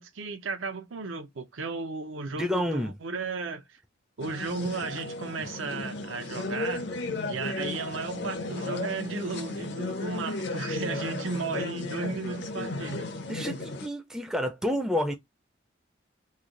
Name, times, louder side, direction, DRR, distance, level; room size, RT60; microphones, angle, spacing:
voice 1, 0.0-3.8 4.2-6.9 7.3-13.1, right 4 dB, 80° right, 0.6 m, -34 dB
voice 2, 2.3-2.9 13.3-15.1, equal, 5° right, 0.4 m, -29 dB
sound 1, 4.2-13.9, left 2 dB, 60° left, 0.7 m, -35 dB
3.2 x 2.3 x 3.6 m
head